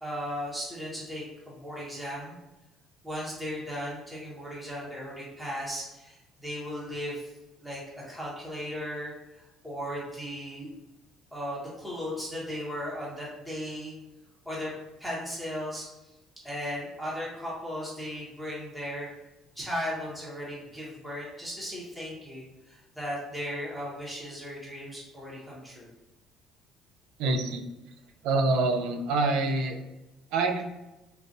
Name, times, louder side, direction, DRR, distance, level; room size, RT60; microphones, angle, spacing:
voice 1, 0.0-2.4 3.0-7.3 7.6-10.7 11.3-13.9 14.4-14.7 15.0-16.1 16.4-19.1 19.5-25.9, equal, ahead, -7 dB, 1.0 m, -36 dB
voice 2, 27.2-27.6 28.2-29.8 30.3-30.6, right 3 dB, 75° right, 4 dB, 0.4 m, -26 dB
3.7 x 2.4 x 2.6 m, 1.0 s
cardioid pair, 125°, 0 cm